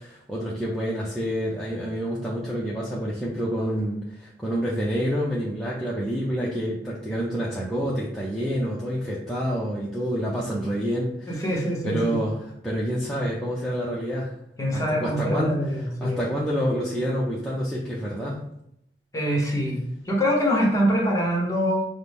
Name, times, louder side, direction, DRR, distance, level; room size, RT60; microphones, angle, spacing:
voice 1, 0.0-14.3 14.7-18.4, equal, ahead, -7 dB, 0.5 m, -28 dB
voice 2, 11.3-12.2 14.6-16.2 19.1-19.8 20.0-21.9, equal, 15° left, -1 dB, 1.0 m, -24 dB
5.7 x 2.0 x 3.4 m, 0.76 s
head